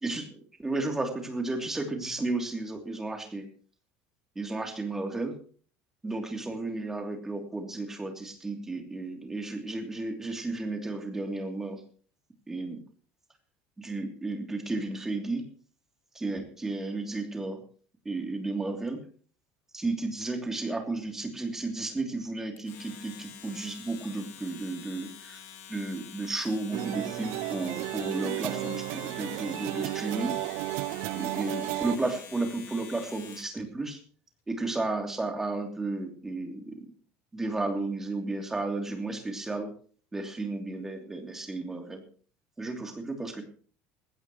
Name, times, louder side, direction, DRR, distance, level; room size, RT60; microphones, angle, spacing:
voice 1, 0.0-3.5 4.3-5.3 6.0-11.8 12.5-12.8 13.8-15.5 16.1-17.6 18.0-19.0 19.7-25.4 25.7-30.4 31.1-34.0 34.5-36.9 37.3-39.7 40.1-42.0 42.6-43.4, right 2 dB, 10° right, 3 dB, 2.9 m, -33 dB
Domestic sounds home sounds, 22.6-33.6, left 8 dB, 55° left, 4.0 m, -47 dB
sound 1, 26.7-32.0, right 19 dB, 60° right, 0.6 m, -33 dB
19.5 x 16.5 x 3.1 m, 0.43 s
cardioid pair, 180°, 5 cm